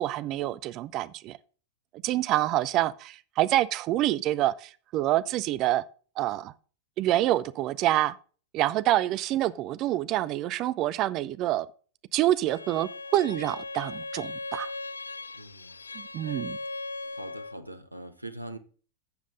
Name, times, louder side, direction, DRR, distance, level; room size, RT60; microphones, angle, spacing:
voice 1, 0.0-1.4 2.0-5.8 6.2-6.5 7.0-8.1 8.5-11.7 12.1-14.7 15.9-16.6, right 14 dB, 35° right, 0.5 m, -27 dB
Bowed string instrument, 12.5-17.6, left 3 dB, 75° left, 0.3 m, -38 dB
voice 2, 15.3-15.8 17.1-18.6, right 1 dB, 85° right, 1.0 m, -42 dB
11.5 x 7.4 x 3.8 m
figure-of-eight pair, 90°, 0 cm